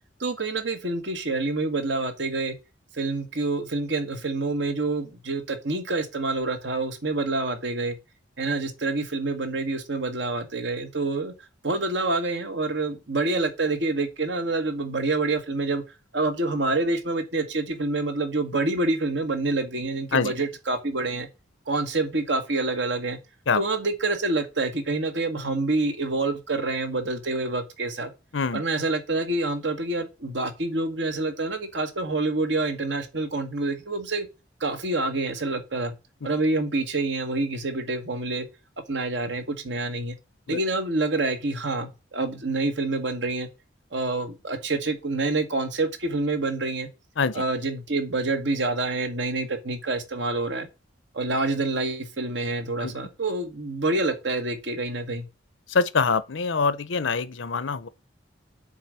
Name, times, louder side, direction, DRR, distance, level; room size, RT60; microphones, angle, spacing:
voice 1, 0.2-2.5 2.9-8.0 8.4-11.3 11.6-15.8 16.1-21.3 21.7-23.2 23.6-28.1 28.5-34.3 34.6-35.9 36.2-38.5 38.9-40.2 40.5-43.5 43.9-46.9 47.3-50.7 51.1-55.3, right 2 dB, 65° right, 1.4 m, -27 dB
voice 2, 55.7-57.9, left 4 dB, 75° left, 0.7 m, -24 dB
7.1 x 4.0 x 6.2 m
head